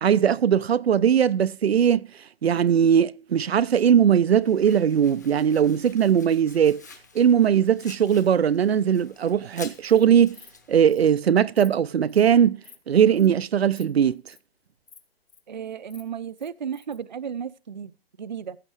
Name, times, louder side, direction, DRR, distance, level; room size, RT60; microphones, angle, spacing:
voice 1, 0.0-2.1 2.4-6.8 7.1-10.4 10.7-14.2, right 8 dB, 85° right, 0.6 m, -20 dB
Domestic sounds home sounds, 4.4-10.8, left 4 dB, 20° left, 0.7 m, -48 dB
Insect, 9.9-10.0 10.3-10.6 10.9-11.0 11.3-11.7 12.1-12.3 12.6-12.8 13.1-13.3 13.7-13.8 14.1-14.4 14.9-15.4 15.7-17.0, left 6 dB, 75° left, 2.1 m, -51 dB
voice 2, 15.5-18.6, right 7 dB, 50° right, 0.5 m, -34 dB
15.0 x 7.0 x 4.8 m
hypercardioid pair, 175°, 31 cm